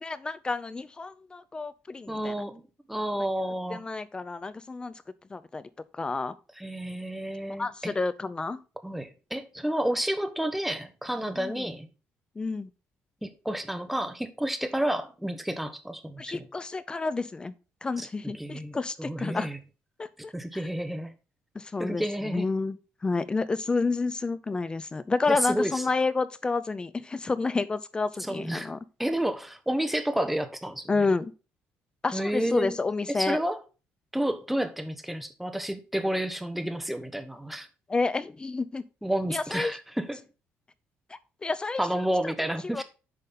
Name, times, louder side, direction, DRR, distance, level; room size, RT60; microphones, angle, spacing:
voice 1, 0.0-2.3 3.7-4.9 5.3-5.6 5.9-6.3 7.6-8.6 11.4-11.7 12.4-12.7 16.2-17.5 17.8-19.5 20.0-20.3 21.5-22.8 23.0-28.8 30.9-31.3 32.0-33.4 37.9-38.8 39.3-39.8 41.4-41.8 42.2-42.3 42.7-42.8, left 3 dB, 20° left, 0.5 m, -29 dB
voice 2, 2.1-2.6 2.9-3.8 6.6-7.9 8.8-11.9 13.2-16.5 18.0-19.6 20.3-21.1 21.8-22.5 25.3-25.8 28.3-28.7 29.0-30.9 32.1-32.8 33.1-33.6 34.1-37.7 39.0-40.2 41.8-42.8, right 1 dB, 5° right, 1.0 m, -30 dB
8.5 x 5.3 x 3.8 m
cardioid pair, 140°, 5 cm